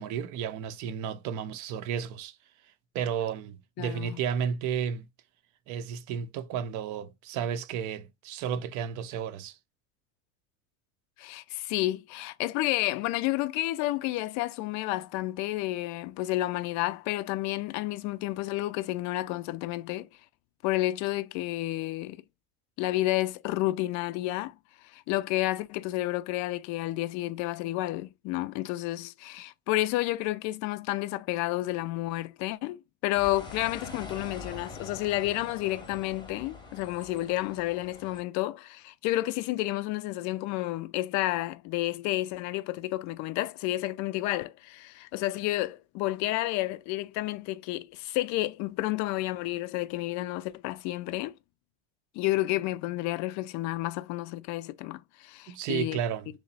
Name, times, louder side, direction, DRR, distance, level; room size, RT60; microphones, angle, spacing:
voice 1, 0.0-2.4 2.9-5.1 5.7-9.6 55.5-56.3, right 8 dB, 45° right, 0.5 m, -32 dB
voice 2, 3.8-4.2 11.2-20.1 20.6-22.2 22.8-24.6 24.8-51.3 52.1-56.0, left 17 dB, 45° left, 0.4 m, -30 dB
sound 1, 33.1-38.2, left 3 dB, 10° left, 0.8 m, -44 dB
3.0 x 2.0 x 4.0 m
hypercardioid pair, 85°, 40 cm